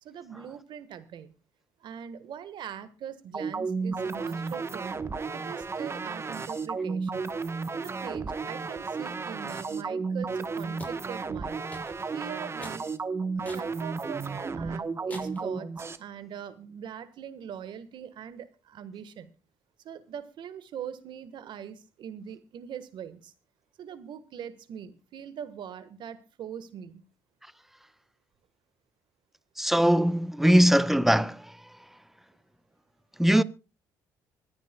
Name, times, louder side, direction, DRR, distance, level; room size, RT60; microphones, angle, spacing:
voice 1, 0.0-1.3 1.8-5.0 5.3-7.3 7.7-11.6 12.0-12.9 13.4-15.7 16.0-19.3 19.8-23.3 23.8-27.0, right 8 dB, 65° right, 1.3 m, -42 dB
sound 1, 3.3-16.0, right 4 dB, 30° right, 1.0 m, -33 dB
sound 2, 10.8-11.0 11.7-12.1 12.6-12.8 13.4-13.7 14.2-14.3 15.1-15.5, left 1 dB, 15° left, 6.4 m, -45 dB
voice 2, 29.6-31.6 33.2-33.4, equal, 5° right, 0.7 m, -21 dB
25.0 x 9.6 x 2.2 m
supercardioid pair, 70°, 9 cm